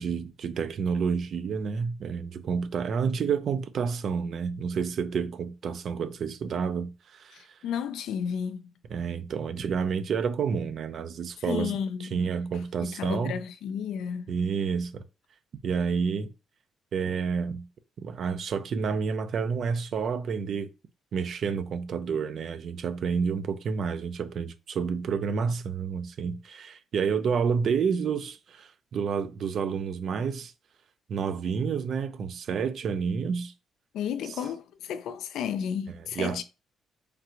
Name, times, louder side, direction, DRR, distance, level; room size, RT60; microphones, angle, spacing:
voice 1, 0.0-7.5 8.9-11.7 12.1-13.3 14.3-15.0 15.6-16.3 16.9-17.7 18.0-20.7 21.1-30.5 31.1-33.5 36.2-36.4, right 6 dB, 60° right, 0.4 m, -29 dB
voice 2, 7.3-8.6 11.4-12.2 12.8-14.3 33.9-36.4, left 8 dB, 80° left, 0.4 m, -32 dB
3.2 x 2.4 x 2.9 m
cardioid pair, 90°, 0 cm